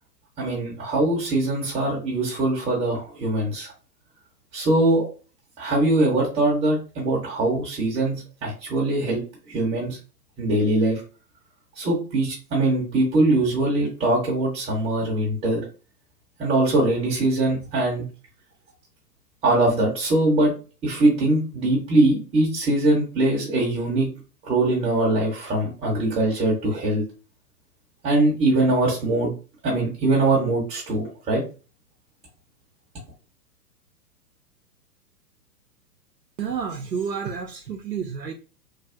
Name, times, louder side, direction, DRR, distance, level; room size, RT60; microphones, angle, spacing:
voice 1, 0.4-3.7 4.5-5.1 5.6-9.2 9.5-10.0 10.4-11.0 11.8-15.6 16.4-18.1 19.4-20.5 20.8-24.1 24.4-27.0 28.0-29.3 29.6-31.4, right 2 dB, 10° right, 0.7 m, -22 dB
voice 2, 36.4-38.3, right 6 dB, 90° right, 0.6 m, -30 dB
3.2 x 2.3 x 2.4 m
figure-of-eight pair, 115°, 49 cm